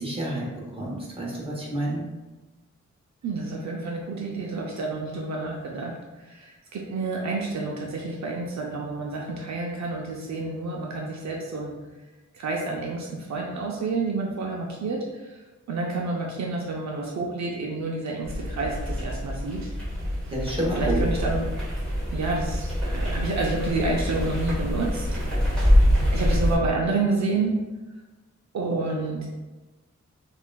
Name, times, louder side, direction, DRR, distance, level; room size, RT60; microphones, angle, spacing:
voice 1, 0.0-2.1 20.3-21.0, right 1 dB, 20° right, -4 dB, 1.0 m, -29 dB
voice 2, 3.2-5.9 6.2-11.7 12.3-15.4 15.7-19.7 20.6-21.5 22.1-25.1 25.4-27.5 28.5-29.3, right 3 dB, 65° right, -1 dB, 0.5 m, -29 dB
sound 1, 18.2-26.6, equal, 5° left, 1.4 m, -25 dB
5.5 x 2.5 x 2.2 m, 1.2 s
wide cardioid pair, 125°, 30 cm